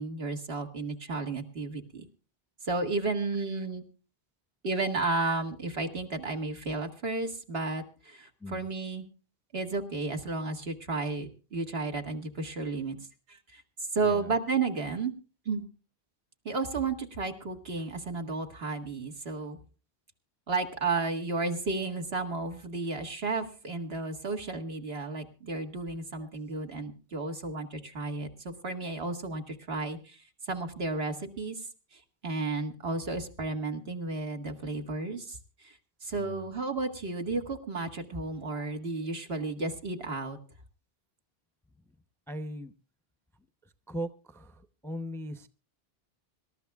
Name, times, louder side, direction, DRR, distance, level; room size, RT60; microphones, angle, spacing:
voice 1, 0.0-2.1 2.6-3.8 4.6-9.1 9.5-13.0 13.3-13.6 13.9-15.1 15.5-15.6 16.5-19.6 20.5-31.7 31.9-40.4, right 3 dB, 75° right, 4 dB, 2.1 m, -33 dB
voice 2, 14.0-14.3 26.2-26.3 36.1-36.5 41.8-41.9 42.3-42.7 43.6-45.5, equal, 5° left, 11 dB, 0.7 m, -39 dB
25.5 x 13.0 x 2.4 m, 0.35 s
omnidirectional pair, 1.0 m